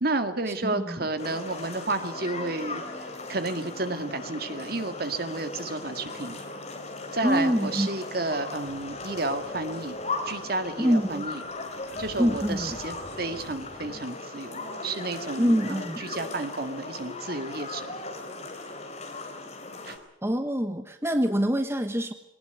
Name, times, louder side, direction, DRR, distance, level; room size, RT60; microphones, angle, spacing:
voice 1, 0.0-6.4 7.1-10.0 10.2-11.4 12.0-17.9 19.8-20.0, right 2 dB, 50° right, 8 dB, 2.0 m, -31 dB
voice 2, 0.6-1.0 7.2-7.9 10.8-11.3 12.2-12.8 15.4-16.0 20.2-22.1, equal, 15° right, 7 dB, 1.1 m, -25 dB
sound 1, 1.2-20.0, left 3 dB, 35° left, 3.6 m, -37 dB
sound 2, 8.6-14.0, left 1 dB, 80° left, 4.5 m, -48 dB
21.0 x 19.0 x 9.4 m, 0.81 s
head